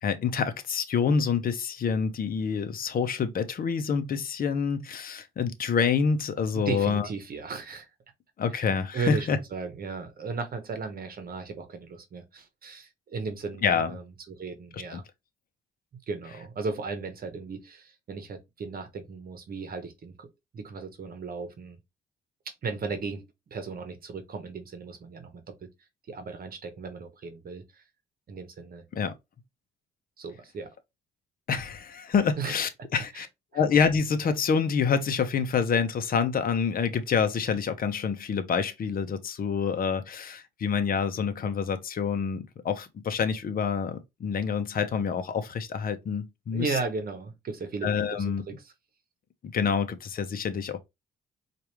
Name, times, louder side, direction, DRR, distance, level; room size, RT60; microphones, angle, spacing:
voice 1, 0.0-7.1 8.4-9.4 13.6-13.9 14.7-15.0 28.9-29.1 31.5-33.3 33.5-46.7 47.8-48.4 49.4-50.8, left 6 dB, 45° left, 0.7 m, -27 dB
voice 2, 6.5-7.9 8.5-15.0 16.1-20.3 20.5-21.8 22.5-23.3 23.5-25.7 26.1-27.8 28.3-28.8 30.2-30.7 32.4-32.5 33.1-33.3 33.5-33.6 46.5-48.7, right 4 dB, 50° right, 1.0 m, -36 dB
4.7 x 2.5 x 3.0 m
cardioid pair, 90°, 20 cm